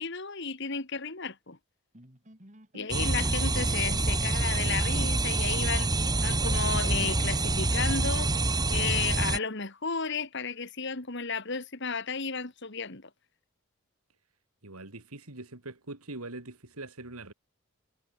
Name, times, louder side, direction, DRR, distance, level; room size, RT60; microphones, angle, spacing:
voice 1, 0.0-1.6 2.7-13.1, left 5 dB, 55° left, 2.1 m, -33 dB
sound 1, 1.9-8.9, right 1 dB, 35° right, 4.5 m, -53 dB
sound 2, 2.9-9.4, right 2 dB, 20° right, 1.6 m, -27 dB
voice 2, 14.6-17.3, right 2 dB, 90° right, 3.0 m, -43 dB
head